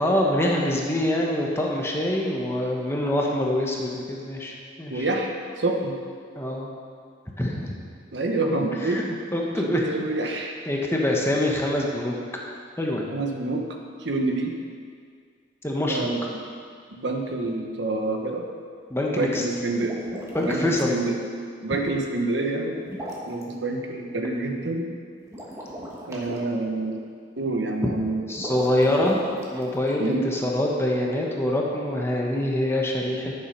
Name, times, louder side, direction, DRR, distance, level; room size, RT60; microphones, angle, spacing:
voice 1, 0.0-5.1 6.3-6.7 7.4-7.7 8.8-9.0 9.3-9.9 10.7-12.2 12.8-13.1 15.6-16.1 18.9-19.4 20.3-21.0 28.3-29.2 29.5-33.3, left 1 dB, 15° left, -1 dB, 1.1 m, -25 dB
voice 2, 4.9-5.3 5.6-6.0 8.1-9.2 9.6-10.6 13.1-13.7 14.0-14.5 15.9-16.4 16.9-18.4 19.1-20.0 20.4-21.1 21.6-22.9 23.3-24.9 26.1-27.0 27.4-28.2 30.0-30.3, right 2 dB, 65° right, 2 dB, 1.1 m, -27 dB
sound 1, 19.7-20.9 22.8-23.4 25.2-26.4 28.3-30.0, equal, 15° right, 1.4 m, -37 dB
12.0 x 7.2 x 5.4 m, 2.1 s
head